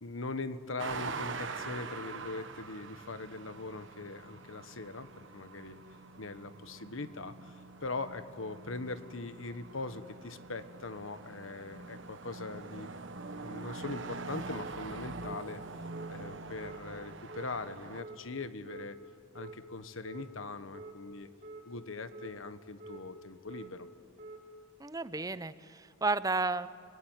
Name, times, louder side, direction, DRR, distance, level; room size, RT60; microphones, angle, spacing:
voice 1, 0.0-5.1 5.3-5.8 6.2-12.9 13.3-15.6 16.1-19.0 19.3-21.3 21.6-23.9, left 3 dB, 80° left, 11 dB, 1.3 m, -41 dB
sound 1, 0.8-18.0, right 4 dB, 65° right, 1.3 m, -44 dB
sound 2, 13.8-14.0 14.5-14.7 15.2-15.4 15.9-16.1 16.6-16.8 17.3-17.5 18.0-18.2 18.7-18.9 19.3-19.6 20.0-20.3 20.7-20.9 21.4-21.6 22.1-22.3 22.8-23.0 23.5-23.7 24.2-24.4, right 2 dB, 45° right, 4.7 m, -47 dB
voice 2, 24.8-26.7, right 3 dB, 20° right, 14 dB, 0.6 m, -32 dB
29.5 x 19.0 x 9.2 m, 2.2 s
head